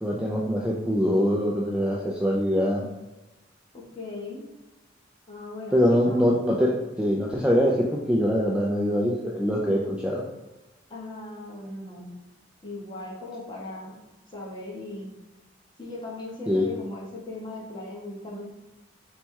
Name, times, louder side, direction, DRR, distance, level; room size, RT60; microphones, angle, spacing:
voice 1, 0.0-2.9 5.7-10.2 16.5-16.7, equal, 5° right, -3 dB, 0.3 m, -23 dB
voice 2, 3.7-4.4 5.3-6.2 10.9-12.1 12.6-14.0 14.3-15.1 15.8-18.5, left 2 dB, 25° left, -4 dB, 1.0 m, -38 dB
4.1 x 2.3 x 4.5 m, 1.0 s
head